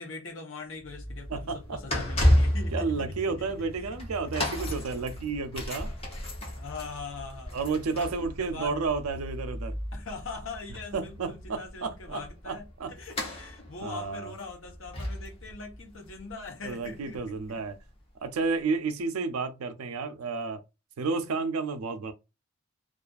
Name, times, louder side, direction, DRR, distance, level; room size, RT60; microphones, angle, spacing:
voice 1, 0.0-4.0 5.8-6.0 6.5-7.6 7.9-8.8 9.9-12.6 13.0-17.6, left 4 dB, 60° left, 0.8 m, -42 dB
sound 1, 0.8-17.8 18.4-18.5, equal, 25° left, 0.7 m, -32 dB
voice 2, 1.3-1.8 2.7-5.9 7.5-9.8 10.9-12.2 12.5-12.9 13.8-14.3 16.6-17.8 18.2-20.6 21.0-22.1, right 4 dB, 80° right, 0.4 m, -31 dB
2.4 x 2.4 x 2.3 m
head